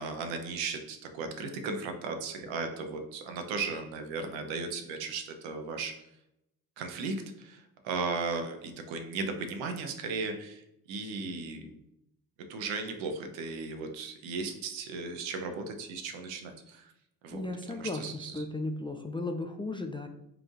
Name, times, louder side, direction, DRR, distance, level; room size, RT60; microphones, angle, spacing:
voice 1, 0.0-6.1 6.8-11.8 12.4-16.9 17.2-18.4, right 4 dB, 80° right, 5 dB, 0.8 m, -36 dB
voice 2, 17.3-18.0 18.3-20.1, left 2 dB, 10° left, 4 dB, 0.3 m, -35 dB
4.8 x 3.1 x 2.4 m, 0.84 s
supercardioid pair, 60°, 46 cm